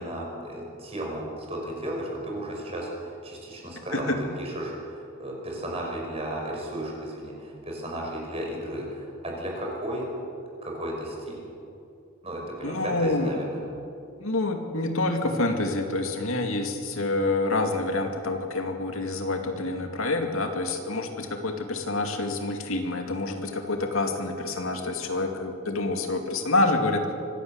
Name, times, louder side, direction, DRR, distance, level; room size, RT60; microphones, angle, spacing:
voice 1, 0.0-10.1 10.6-11.4 12.2-13.6, right 1 dB, 30° right, -1 dB, 5.8 m, -34 dB
voice 2, 3.9-4.2 12.6-13.3 14.2-27.1, left 2 dB, 75° left, 4 dB, 2.4 m, -27 dB
25.0 x 17.0 x 8.1 m, 2.6 s
head